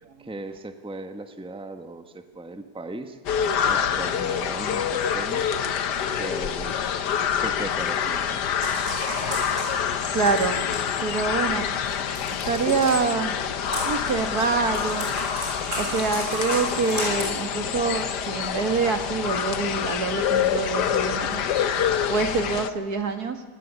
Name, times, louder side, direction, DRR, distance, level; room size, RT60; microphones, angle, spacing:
voice 1, 0.2-3.2 3.7-5.5 6.2-6.8 7.3-8.4, right 2 dB, 5° right, 8 dB, 1.4 m, -37 dB
sound 1, 3.3-22.7, left 8 dB, 90° left, 1.7 m, -27 dB
sound 2, 8.6-10.9 12.1-12.9 13.6-17.3, equal, 50° right, 8.1 m, -32 dB
voice 2, 10.1-10.6 11.0-11.7 12.4-13.4 13.9-15.4 15.8-23.4, right 4 dB, 70° right, 7 dB, 2.5 m, -26 dB
25.5 x 19.0 x 9.7 m, 1.3 s
omnidirectional pair, 1.7 m